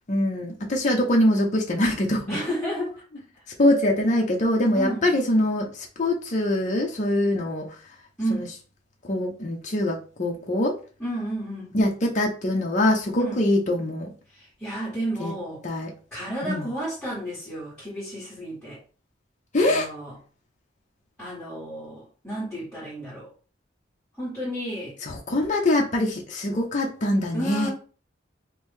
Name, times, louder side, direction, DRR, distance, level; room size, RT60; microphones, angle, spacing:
voice 1, 0.1-2.4 3.6-7.7 8.3-8.5 9.1-10.8 11.7-14.1 15.2-15.3 15.6-15.9 16.4-16.7 19.5-19.9 25.0-27.7, left 1 dB, 40° left, 0 dB, 0.6 m, -23 dB
voice 2, 2.3-2.9 4.7-5.1 8.2-8.5 11.0-11.7 13.2-13.4 14.3-15.6 16.1-18.8 19.6-20.1 21.2-23.3 24.2-25.0 27.3-27.7, right 1 dB, 5° left, -9 dB, 1.8 m, -31 dB
3.0 x 2.6 x 3.6 m, 0.38 s
head